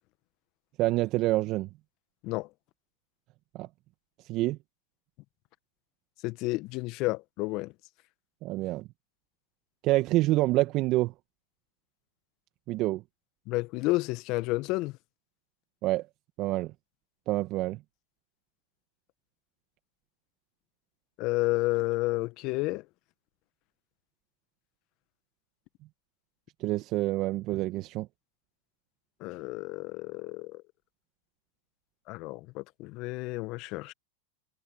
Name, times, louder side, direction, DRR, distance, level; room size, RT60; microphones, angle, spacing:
voice 1, 0.8-1.7 3.5-3.7 4.3-4.6 8.4-8.8 9.8-11.1 12.7-13.0 15.8-16.1 16.4-16.7 17.3-17.8 26.6-28.1, right 18 dB, 45° right, 2.0 m, -27 dB
voice 2, 6.2-7.7 13.5-14.9 21.2-22.8 29.2-30.6 32.1-33.9, left 21 dB, 50° left, 1.6 m, -31 dB
hypercardioid pair, 100°, 0 cm